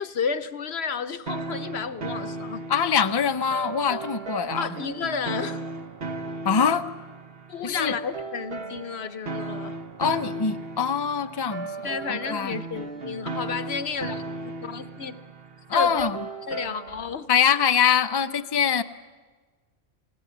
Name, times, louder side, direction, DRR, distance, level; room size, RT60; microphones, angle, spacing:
voice 1, 0.0-2.6 4.6-5.7 7.5-9.8 11.8-14.2 14.6-15.2 15.7-16.1 16.5-17.3, left 5 dB, 60° left, 1.1 m, -31 dB
sound 1, 1.3-17.2, right 3 dB, 55° right, 1.4 m, -36 dB
voice 2, 2.7-4.7 6.4-6.9 7.6-8.0 10.0-11.7 12.1-12.6 15.7-16.2 17.3-18.8, left 7 dB, 25° left, 0.6 m, -23 dB
28.5 x 17.0 x 8.1 m
omnidirectional pair, 1.2 m